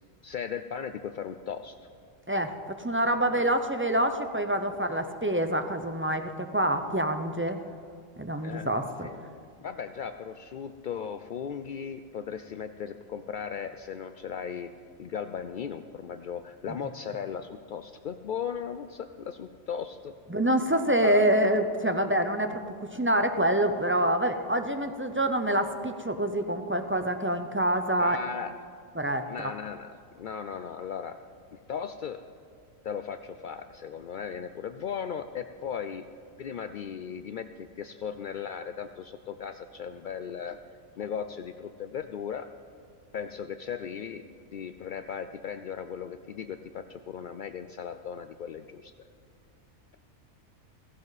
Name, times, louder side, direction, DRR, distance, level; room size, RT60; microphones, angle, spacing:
voice 1, 0.2-1.8 3.3-3.5 8.4-8.7 9.0-14.7 15.0-20.1 21.0-21.2 28.0-28.5 29.3-31.2 31.5-32.2 32.8-36.1 36.4-40.6 41.0-42.5 43.1-44.2 44.5-48.9, left 7 dB, 75° left, 9 dB, 0.4 m, -37 dB
voice 2, 2.3-7.6 8.2-9.1 20.3-28.2 29.0-29.2, right 1 dB, 20° right, 7 dB, 0.3 m, -26 dB
16.0 x 16.0 x 4.1 m, 2.3 s
omnidirectional pair, 1.4 m